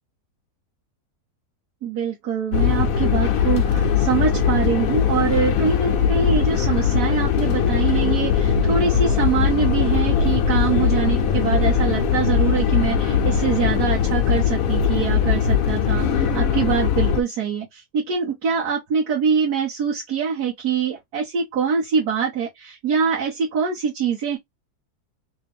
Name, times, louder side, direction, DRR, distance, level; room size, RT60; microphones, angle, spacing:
voice 1, 1.8-24.4, right 7 dB, 75° right, 1.6 m, -24 dB
sound 1, 2.5-17.2, left 7 dB, 65° left, 1.1 m, -20 dB
3.4 x 3.0 x 3.4 m
omnidirectional pair, 1.7 m